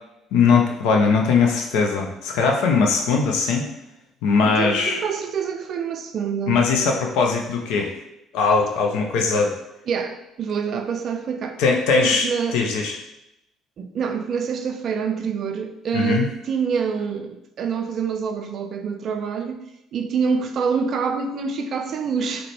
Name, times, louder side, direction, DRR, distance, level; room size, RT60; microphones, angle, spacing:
voice 1, 0.3-3.7 4.2-5.0 6.5-7.9 8.3-9.5 11.6-12.3 12.5-13.0 15.9-16.3, left 5 dB, 70° left, 2 dB, 0.3 m, -20 dB
voice 2, 4.5-6.6 9.9-11.6 12.0-12.6 13.8-19.6 19.9-22.5, right 6 dB, 55° right, 6 dB, 0.3 m, -26 dB
3.7 x 2.2 x 2.9 m, 0.85 s
hypercardioid pair, 50°, 0 cm